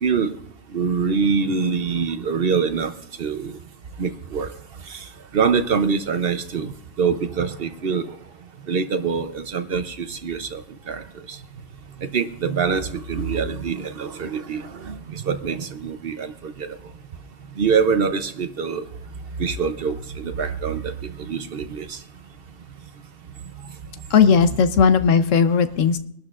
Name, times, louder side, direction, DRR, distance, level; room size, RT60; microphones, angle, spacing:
voice 1, 0.0-0.4 0.7-2.9 3.2-3.6 4.0-4.5 4.8-6.7 7.0-8.2 8.7-11.4 12.0-16.8 17.6-18.8 19.4-22.0, right 5 dB, 55° right, 10 dB, 0.8 m, -24 dB
voice 2, 24.1-26.0, left 6 dB, 80° left, 10 dB, 1.1 m, -16 dB
23.0 x 12.0 x 2.4 m, 0.70 s
omnidirectional pair, 1.3 m